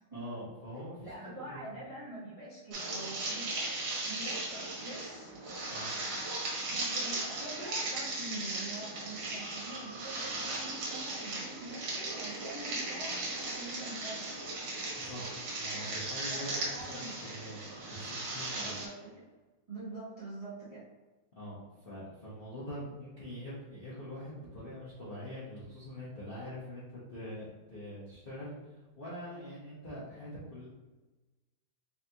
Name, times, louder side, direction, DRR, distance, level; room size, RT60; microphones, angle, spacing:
voice 1, 0.1-1.8 5.7-5.9 15.0-18.8 21.4-30.7, equal, 45° left, -10 dB, 0.7 m, -44 dB
voice 2, 1.0-3.7 4.1-5.3 6.7-14.3 16.3-17.2 18.6-18.9 19.7-20.8, right 2 dB, 30° right, -9 dB, 0.6 m, -45 dB
sound 1, 2.7-18.9, right 2 dB, 65° right, 1.8 m, -37 dB
4.1 x 2.8 x 3.4 m, 1.2 s
omnidirectional pair, 2.3 m